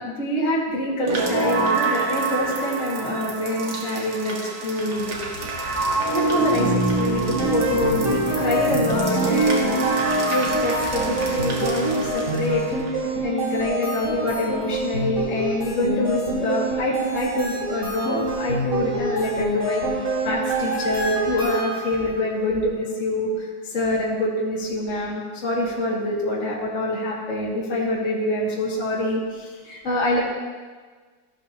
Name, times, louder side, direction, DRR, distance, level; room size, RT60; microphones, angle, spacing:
voice 1, 0.0-4.4 4.6-5.2 6.1-9.8 10.3-12.6 12.9-19.8 20.2-30.2, left 1 dB, 40° left, -5 dB, 2.3 m, -25 dB
sound 1, 1.0-12.9, right 3 dB, 75° right, 2.5 m, -25 dB
sound 2, 7.4-22.1, right 1 dB, 40° right, 3.4 m, -26 dB
15.5 x 12.0 x 2.8 m, 1.5 s
omnidirectional pair, 2.2 m